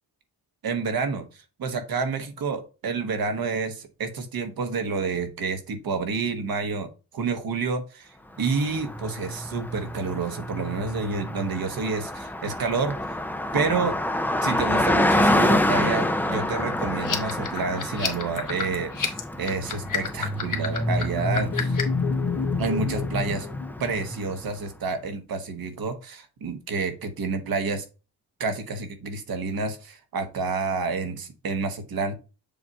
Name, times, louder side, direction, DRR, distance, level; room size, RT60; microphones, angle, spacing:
voice 1, 0.6-6.9 7.1-13.0 13.5-14.0 14.4-21.8 22.6-23.5 23.8-27.8 28.4-32.2, right 4 dB, 65° right, 7 dB, 1.1 m, -29 dB
Car passing by, 8.4-24.5, left 1 dB, 5° left, 0.5 m, -27 dB
sound 1, 17.0-22.0, left 7 dB, 55° left, 1.2 m, -30 dB
sound 2, 20.3-24.3, left 7 dB, 75° left, 0.9 m, -33 dB
7.0 x 2.5 x 5.3 m, 0.31 s
wide cardioid pair, 120°, 38 cm